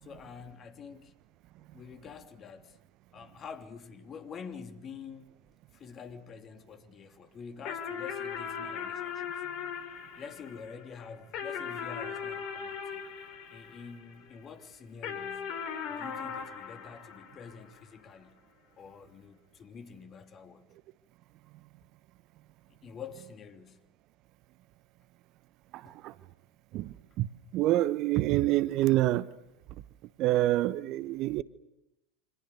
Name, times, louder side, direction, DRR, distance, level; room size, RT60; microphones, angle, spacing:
voice 1, 0.0-1.1 1.7-2.8 3.1-5.4 5.7-9.4 10.1-13.0 13.5-15.6 15.9-18.4 18.8-20.7 22.7-23.8 25.8-26.0, left 6 dB, 30° left, 3.0 m, -47 dB
sound 1, 7.6-14.3 15.0-17.8, left 7 dB, 45° left, 4.7 m, -39 dB
voice 2, 27.5-29.2 30.2-31.4, right 15 dB, 45° right, 1.0 m, -26 dB
30.0 x 26.0 x 6.8 m
figure-of-eight pair, 85°, 0 cm